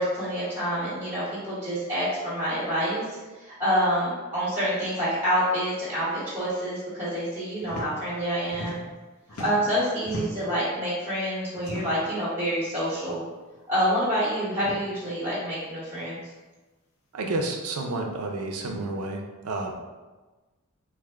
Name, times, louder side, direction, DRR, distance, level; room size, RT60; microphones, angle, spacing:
voice 1, 0.0-8.8 9.4-13.2 13.7-16.2, equal, 10° right, -10 dB, 1.1 m, -27 dB
sound 1, 7.6-7.9 8.2-9.0 9.3-10.6 11.6-12.1 13.0-13.2 13.5-13.6 14.5-14.8 16.0-16.1 17.2-17.5 18.6-18.8, equal, 80° left, 0.6 m, -38 dB
voice 2, 17.1-19.7, right 2 dB, 90° right, 2 dB, 0.5 m, -30 dB
3.3 x 2.1 x 3.4 m, 1.2 s
head